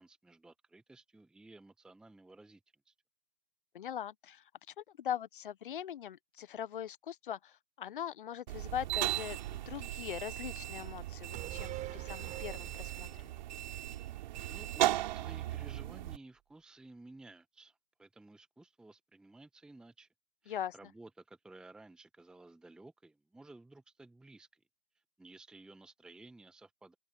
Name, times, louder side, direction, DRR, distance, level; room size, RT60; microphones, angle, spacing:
voice 1, 0.0-2.6 2.8-2.9 14.5-20.1 20.4-24.6 25.2-26.9, right 2 dB, ahead, 1.4 m, -55 dB
voice 2, 3.7-4.4 4.8-13.1 20.5-20.7, left 10 dB, 40° left, 1.0 m, -41 dB
sound 1, 8.5-16.2, right 15 dB, 35° right, 3.0 m, -37 dB
sound 2, 11.3-14.9 15.2-15.3, right 15 dB, 20° right, 4.8 m, -46 dB
open air
figure-of-eight pair, 135°, 39 cm